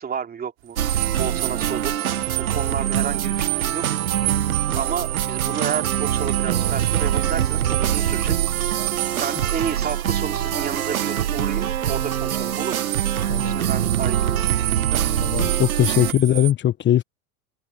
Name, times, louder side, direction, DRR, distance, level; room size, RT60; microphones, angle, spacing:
voice 1, 0.0-2.0 2.5-3.8 4.5-8.9 9.2-12.9 13.4-14.7, right 7 dB, 20° right, 2.7 m, -31 dB
sound 1, 0.7-10.0 12.5-16.5, right 24 dB, 55° right, 3.7 m, -31 dB
sound 2, 0.8-16.1, right 10 dB, 85° right, 1.0 m, -24 dB
voice 2, 15.2-17.0, left 12 dB, 25° left, 1.2 m, -20 dB
hypercardioid pair, 100°, 42 cm